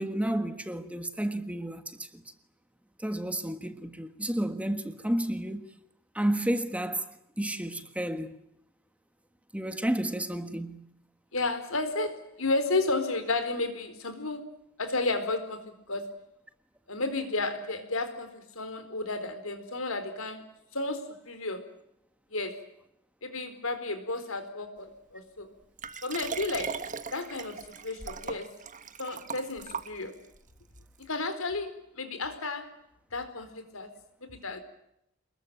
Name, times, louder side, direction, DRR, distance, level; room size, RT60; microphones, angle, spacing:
voice 1, 0.0-2.2 3.0-5.7 6.1-8.4 9.5-10.9, right 1 dB, 5° right, 1.5 m, -31 dB
voice 2, 11.3-16.2 16.9-20.5 20.7-21.7 22.3-22.7 23.2-25.5 26.0-28.6 29.0-30.2 31.0-32.8 33.1-33.9 34.2-34.6, left 3 dB, 80° left, 4.4 m, -33 dB
Liquid, 25.8-30.4 31.0-31.1, right 6 dB, 40° right, 1.4 m, -39 dB
28.5 x 21.5 x 9.0 m
head